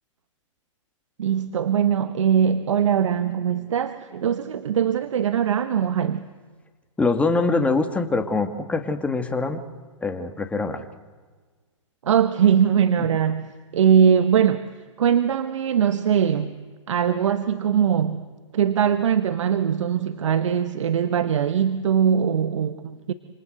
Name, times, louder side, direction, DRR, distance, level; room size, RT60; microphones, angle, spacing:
voice 1, 1.2-6.3 12.0-14.7 15.0-16.6 16.9-18.2 18.5-23.1, right 8 dB, 70° right, 11 dB, 1.4 m, -21 dB
voice 2, 7.0-9.6 10.0-10.8, left 3 dB, 10° left, 7 dB, 2.1 m, -23 dB
27.0 x 27.0 x 8.0 m, 1.4 s
hypercardioid pair, 130°, 16 cm